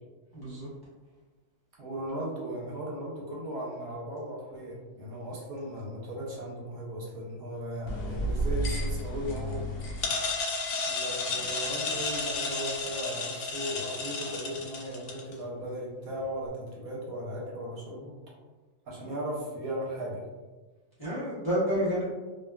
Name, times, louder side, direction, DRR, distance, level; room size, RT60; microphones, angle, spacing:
voice 1, 0.3-0.7 11.4-11.5 21.0-22.0, equal, 20° left, -11 dB, 0.6 m, -29 dB
voice 2, 1.8-9.6 10.8-18.1 18.9-20.2, equal, 85° right, -4 dB, 1.2 m, -37 dB
sound 1, 7.9-15.3, left 2 dB, 75° left, 0.9 m, -32 dB
2.6 x 2.3 x 2.2 m, 1.3 s
omnidirectional pair, 1.5 m